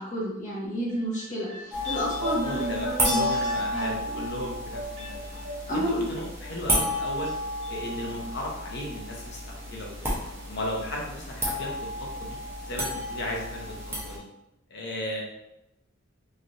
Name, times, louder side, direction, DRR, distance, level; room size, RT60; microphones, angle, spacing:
voice 1, 0.0-3.4 3.7-4.0 5.7-6.1, equal, 40° left, -6 dB, 1.1 m, -30 dB
sound 1, 0.9-6.1 6.4-7.3 7.6-7.7, equal, 75° right, 1.2 m, -37 dB
sound 2, 1.7-14.2, equal, 10° right, 0.7 m, -32 dB
voice 2, 2.2-5.2 5.7-7.3 7.7-10.1 10.5-12.4 12.7-14.2 14.7-15.2, left 1 dB, 60° left, -2 dB, 0.8 m, -35 dB
3.2 x 2.5 x 2.6 m, 0.87 s
head